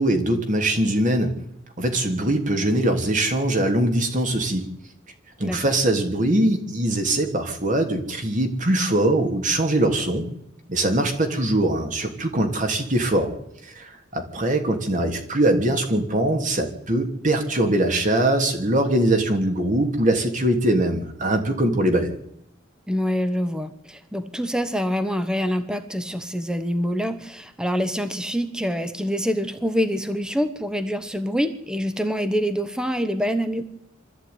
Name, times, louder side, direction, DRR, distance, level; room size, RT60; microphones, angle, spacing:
voice 1, 0.0-1.3 1.8-4.7 5.4-10.3 10.7-13.3 13.6-22.1, right 1 dB, 45° right, 5 dB, 3.1 m, -22 dB
voice 2, 22.9-33.6, equal, 5° right, 10 dB, 1.3 m, -25 dB
24.0 x 14.0 x 9.6 m, 0.75 s
head